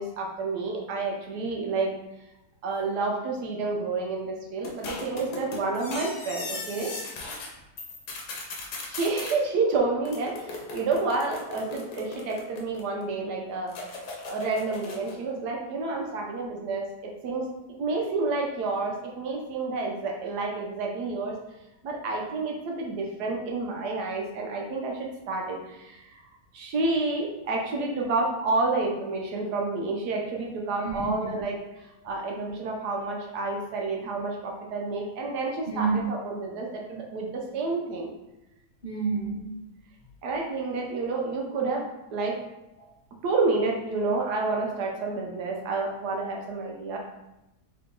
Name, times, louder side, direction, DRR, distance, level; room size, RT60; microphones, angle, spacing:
voice 1, 0.0-1.9 2.6-7.0 8.9-13.7 14.2-16.9 17.2-17.4 17.8-21.3 21.8-26.2 26.5-38.1 40.2-42.3 43.2-47.0, right 3 dB, 75° right, -1 dB, 1.3 m, -29 dB
sound 1, 4.6-7.5 7.8-9.4 10.0-13.0 13.7-15.2, left 3 dB, 70° left, 1.3 m, -38 dB
voice 2, 30.8-31.3 35.7-36.0 38.8-39.5, right 5 dB, 45° left, -7 dB, 0.8 m, -29 dB
3.9 x 2.9 x 3.6 m, 0.93 s
omnidirectional pair, 1.8 m